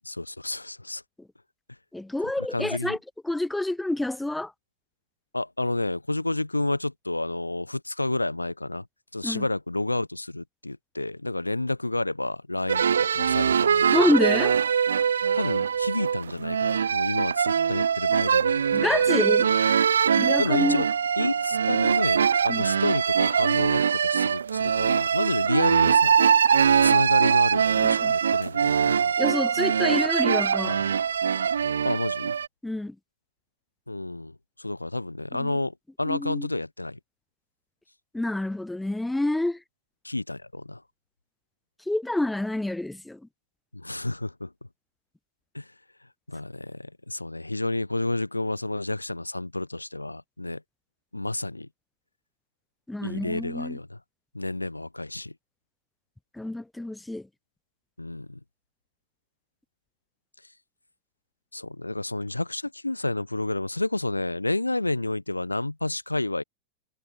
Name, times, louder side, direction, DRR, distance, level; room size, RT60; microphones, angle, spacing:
voice 1, 0.0-1.0 2.4-3.0 5.3-8.9 9.1-14.0 15.3-18.9 20.4-20.9 21.2-26.2 26.8-29.1 31.8-32.4 33.9-37.0 40.0-40.8 43.7-44.5 45.5-45.7 46.3-50.6 51.1-51.7 53.0-54.0 54.3-55.3 58.0-58.4 61.5-66.4, left 2 dB, 85° left, 1.2 m, -30 dB
voice 2, 1.9-3.0 3.3-4.5 9.2-9.4 13.9-14.6 18.7-19.5 20.2-20.8 22.5-22.6 27.8-28.1 29.2-30.8 32.6-32.9 36.1-36.5 38.1-39.6 41.9-43.2 52.9-53.8 56.4-57.3, left 1 dB, 5° left, 0.5 m, -27 dB
Accordion-music-clean, 12.7-32.5, right 7 dB, 70° right, 0.4 m, -22 dB
figure-of-eight pair, 90°, 0 cm